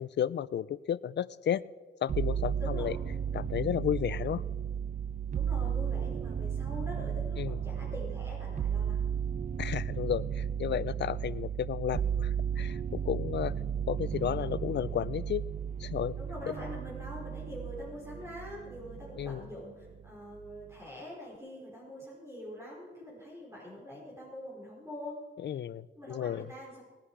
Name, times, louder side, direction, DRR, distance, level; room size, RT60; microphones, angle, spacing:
voice 1, 0.0-1.6 2.0-3.0 3.3-4.4 7.4-7.6 9.6-13.5 13.9-15.4 15.8-16.2 19.2-19.5 25.4-26.5, left 9 dB, 60° left, 19 dB, 0.5 m, -33 dB
sound 1, 2.1-19.5 19.8-20.6, right 8 dB, 40° right, 0.4 m, -34 dB
voice 2, 5.3-9.1 16.2-25.2 25.9-26.8, left 1 dB, 15° right, -6 dB, 5.0 m, -44 dB
20.0 x 10.5 x 5.0 m, 1.4 s
cardioid pair, 110°, 20 cm